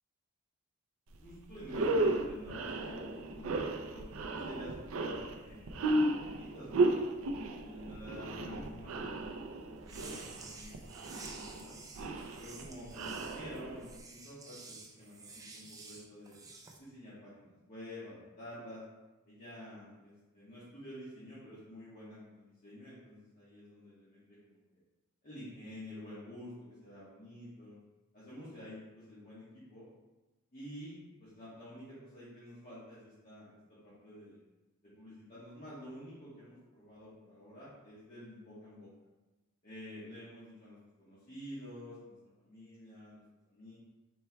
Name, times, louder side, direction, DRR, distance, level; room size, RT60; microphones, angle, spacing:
sound 1, 1.1-1.3 1.6-14.0, right 2 dB, 80° right, 0.4 m, -34 dB
voice 1, 1.2-5.9 6.2-7.1 7.6-11.8 12.4-16.4 16.8-18.8 19.2-24.8 25.2-27.8 28.1-29.9 30.5-33.5 33.8-34.4 34.8-38.9 39.6-43.7, left 1 dB, 40° left, -11 dB, 1.3 m, -50 dB
sound 2, 9.8-16.8, right 3 dB, 15° right, 0.4 m, -51 dB
4.4 x 4.3 x 2.2 m, 1.1 s
head